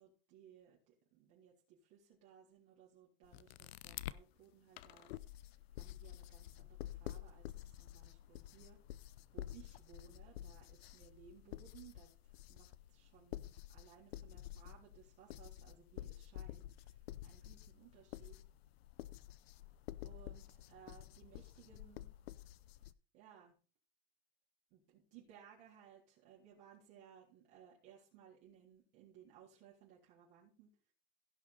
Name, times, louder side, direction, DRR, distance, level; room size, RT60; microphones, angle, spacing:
voice 1, 0.0-18.4 20.0-22.1 23.1-23.5 24.7-30.9, right 8 dB, 50° right, -5 dB, 3.8 m, -62 dB
sound 1, 3.2-4.2 4.8-22.9, left 14 dB, 85° left, 0.7 m, -50 dB
16.5 x 6.5 x 4.1 m, 0.37 s
supercardioid pair, 140°, 30 cm